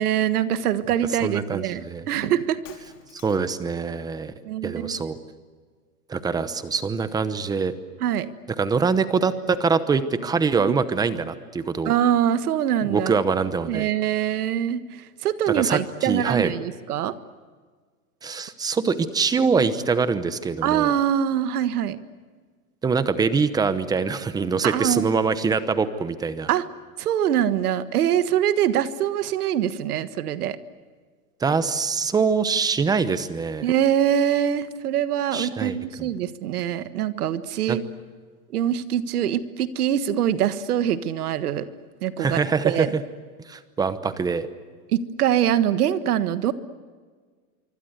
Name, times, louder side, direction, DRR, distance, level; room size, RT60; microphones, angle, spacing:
voice 1, 0.0-2.6 4.4-5.0 8.0-8.3 10.6-10.7 11.8-13.1 13.7-17.1 20.6-22.0 24.6-25.1 26.5-26.7 27.0-30.6 33.6-37.8 38.5-41.6 42.0-42.9 44.9-46.5, right 10 dB, 80° right, 12 dB, 1.6 m, -24 dB
voice 2, 1.2-2.0 3.2-4.3 4.6-5.2 6.1-7.7 8.6-12.0 12.9-13.9 15.5-16.5 18.2-20.9 22.8-26.5 31.4-33.7 35.3-36.1 37.7-37.8 42.2-43.0 43.5-44.5, right 5 dB, 10° right, 12 dB, 0.9 m, -24 dB
Shatter, 2.6-3.6, left 8 dB, 80° left, 5.2 m, -49 dB
26.0 x 24.5 x 8.0 m, 1.5 s
supercardioid pair, 155°, 44 cm